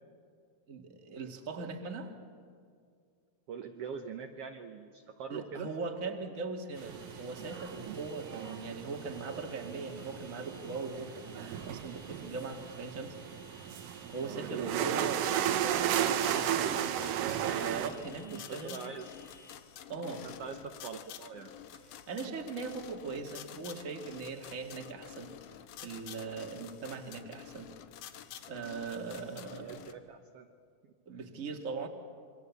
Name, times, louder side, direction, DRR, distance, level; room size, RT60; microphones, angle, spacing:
voice 1, 0.7-2.1 5.3-13.2 14.1-16.7 17.5-18.8 19.9-20.3 22.1-25.3 25.8-27.7 28.5-29.9 31.1-31.9, right 4 dB, 30° right, 3 dB, 1.9 m, -40 dB
voice 2, 3.5-5.7 8.4-8.6 14.2-15.4 18.2-19.1 20.2-21.5 29.3-30.5 30.8-31.2, right 6 dB, 60° right, 5 dB, 1.7 m, -44 dB
sound 1, 6.7-19.5, left 2 dB, 45° left, 4.4 m, -57 dB
sound 2, 6.8-17.9, right 10 dB, 85° right, 2.7 m, -35 dB
sound 3, 15.7-29.9, left 10 dB, 80° left, 2.6 m, -49 dB
27.5 x 23.5 x 8.3 m, 2.2 s
omnidirectional pair, 3.6 m